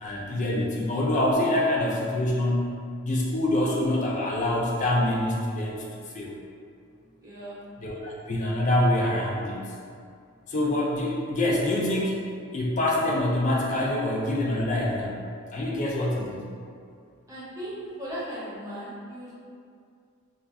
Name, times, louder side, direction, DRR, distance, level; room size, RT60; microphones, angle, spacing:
voice 1, 0.0-2.7 3.0-5.8 6.1-6.3 7.8-9.7 10.5-12.2 12.5-15.2 15.5-16.5, left 1 dB, 35° left, -2 dB, 0.3 m, -25 dB
voice 2, 7.2-7.6 9.2-9.3 17.3-19.3, equal, 15° right, -10 dB, 0.7 m, -37 dB
2.3 x 2.3 x 3.3 m, 2.3 s
head